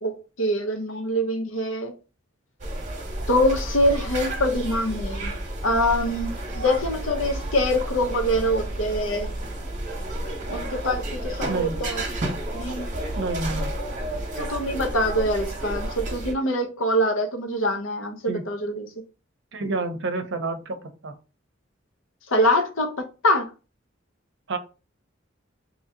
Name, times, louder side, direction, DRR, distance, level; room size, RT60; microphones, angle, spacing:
voice 1, 0.0-1.9 3.3-5.3 5.6-9.3 10.5-12.0 12.5-12.9 14.3-18.9 22.3-23.5, equal, 90° left, 0.8 m, -24 dB
sound 1, 2.6-16.3, right 1 dB, 40° right, 1.0 m, -31 dB
voice 2, 13.2-13.7 18.3-18.5 19.5-21.1 24.5-24.6, right 3 dB, 65° right, 0.7 m, -29 dB
2.9 x 2.8 x 3.8 m
head